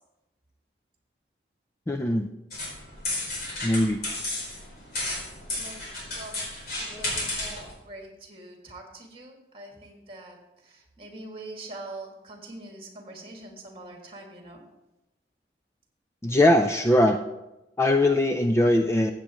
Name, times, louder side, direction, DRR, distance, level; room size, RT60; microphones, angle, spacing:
voice 1, 1.9-2.3 3.6-4.0 16.2-17.2 17.8-19.1, left 1 dB, 15° left, 5 dB, 0.4 m, -21 dB
sound 1, 2.5-7.7, left 2 dB, 55° left, 4.1 m, -33 dB
voice 2, 6.8-7.3 7.9-14.6, right 2 dB, 30° right, 1 dB, 2.1 m, -43 dB
15.0 x 8.3 x 3.0 m, 0.96 s
head